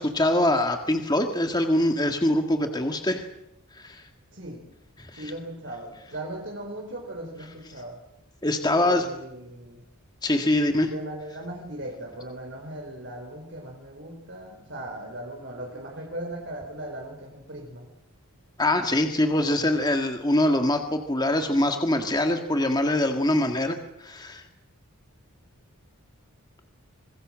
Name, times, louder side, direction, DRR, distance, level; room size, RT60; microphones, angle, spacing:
voice 1, 0.0-3.2 3.7-4.0 5.0-5.2 8.4-9.1 10.2-10.9 18.6-24.4, left 1 dB, 20° left, 5 dB, 1.8 m, -24 dB
voice 2, 4.3-4.7 5.0-8.0 8.6-9.8 10.8-17.9, right 1 dB, 55° right, 1 dB, 4.4 m, -38 dB
26.5 x 21.5 x 7.6 m, 0.83 s
head